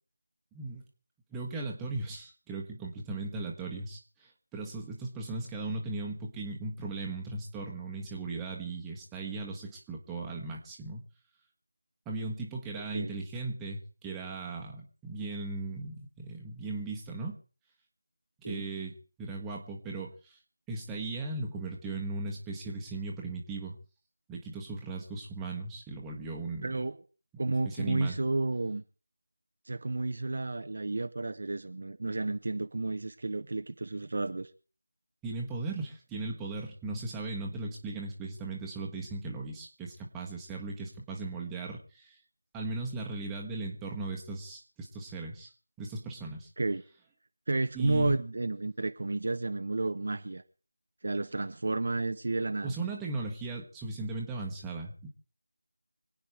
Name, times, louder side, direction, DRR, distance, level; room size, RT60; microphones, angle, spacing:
voice 1, 0.5-0.8 1.3-11.1 12.0-17.4 18.4-20.4 20.7-23.7 24.3-26.8 27.6-28.2 35.2-42.2 42.5-45.5 45.8-46.5 47.7-48.2 52.6-55.1, right 3 dB, 5° right, -2 dB, 1.3 m, -37 dB
voice 2, 26.6-27.0 27.4-28.8 29.7-34.5 46.6-46.8 47.5-50.4 51.0-52.7, right 2 dB, 50° right, 9 dB, 0.9 m, -31 dB
25.0 x 8.8 x 4.7 m, 0.38 s
figure-of-eight pair, 170°, 0 cm